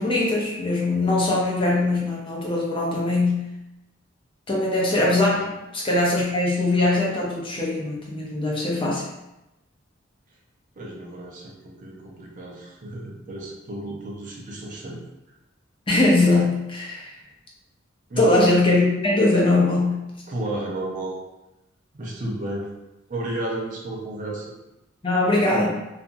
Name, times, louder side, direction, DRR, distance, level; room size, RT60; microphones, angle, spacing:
voice 1, 0.0-3.5 4.5-9.0 15.9-17.1 18.2-20.0 25.0-25.7, left 2 dB, 25° left, -4 dB, 0.6 m, -21 dB
voice 2, 10.8-15.0 18.1-18.5 20.3-21.2 22.0-22.7 23.1-24.5, right 1 dB, 40° right, -2 dB, 0.5 m, -32 dB
2.8 x 2.4 x 2.5 m, 0.93 s
head